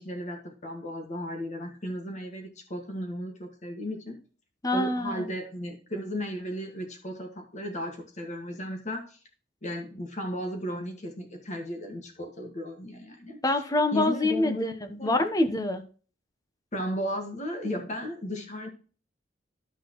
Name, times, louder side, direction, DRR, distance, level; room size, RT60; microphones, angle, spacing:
voice 1, 0.0-4.2 4.7-9.2 9.6-13.4 13.9-14.7 15.0-15.3 16.7-18.7, equal, 40° left, 3 dB, 1.7 m, -35 dB
voice 2, 4.6-5.3 13.4-15.8, left 2 dB, 20° left, 8 dB, 1.0 m, -26 dB
12.5 x 6.2 x 3.1 m, 0.39 s
head